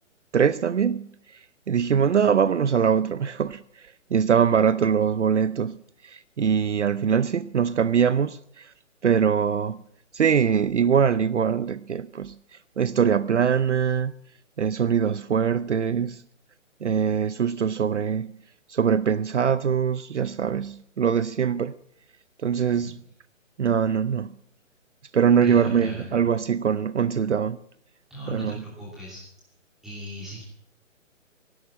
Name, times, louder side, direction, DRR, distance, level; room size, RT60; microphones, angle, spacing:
voice 1, 0.3-1.1 1.7-5.8 6.0-8.7 9.0-9.8 10.1-12.4 12.8-14.1 14.6-16.2 16.8-18.3 18.7-21.7 22.4-22.9 23.6-24.3 25.1-27.6 28.3-28.6, right 7 dB, 60° right, 0.7 m, -23 dB
voice 2, 25.4-26.0 28.1-29.2 29.8-30.4, right 1 dB, ahead, 2.7 m, -38 dB
17.0 x 11.0 x 7.5 m
hypercardioid pair, 180°, 39 cm